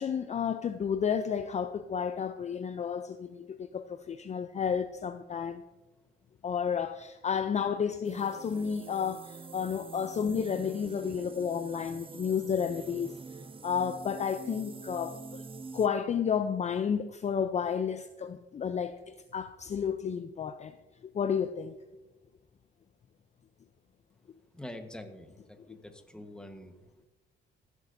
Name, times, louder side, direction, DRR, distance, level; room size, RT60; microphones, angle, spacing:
voice 1, 0.0-5.6 6.4-13.1 13.6-15.4 15.7-20.7 21.1-21.8, left 7 dB, 35° left, 0.5 m, -31 dB
sound 1, 8.0-15.9, right 4 dB, 25° right, 0.6 m, -46 dB
voice 2, 24.5-27.0, left 1 dB, 5° left, 1.2 m, -46 dB
15.5 x 8.2 x 2.6 m
cardioid pair, 90°, 20 cm